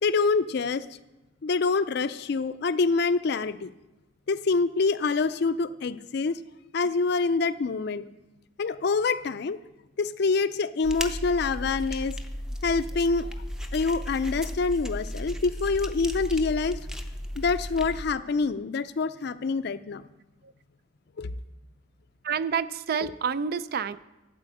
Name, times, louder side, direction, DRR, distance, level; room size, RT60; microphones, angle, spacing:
voice 1, 0.0-0.9 1.4-3.7 4.3-6.4 6.7-8.0 8.6-9.6 10.0-12.2 12.6-13.3 13.7-16.8 17.4-20.0 21.2-21.3, left 4 dB, 55° left, 13 dB, 0.4 m, -26 dB
sound 1, 10.8-18.1, equal, 5° right, 0.5 m, -35 dB
voice 2, 22.2-24.0, right 6 dB, 50° right, 15 dB, 0.3 m, -28 dB
12.5 x 4.4 x 7.8 m, 1.1 s
head